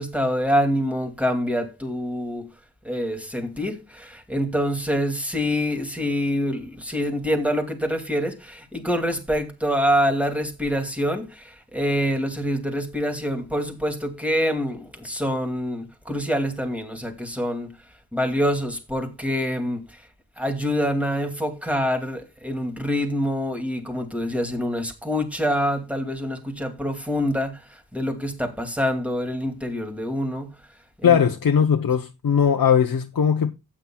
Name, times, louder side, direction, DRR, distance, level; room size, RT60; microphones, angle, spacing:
voice 1, 0.0-2.5 2.8-17.7 18.1-20.0 20.4-30.5 31.0-31.2, equal, 5° right, 2.4 m, -26 dB
voice 2, 31.0-33.5, left 7 dB, 65° left, 0.9 m, -19 dB
14.5 x 9.1 x 2.3 m
wide cardioid pair, 75°, 37 cm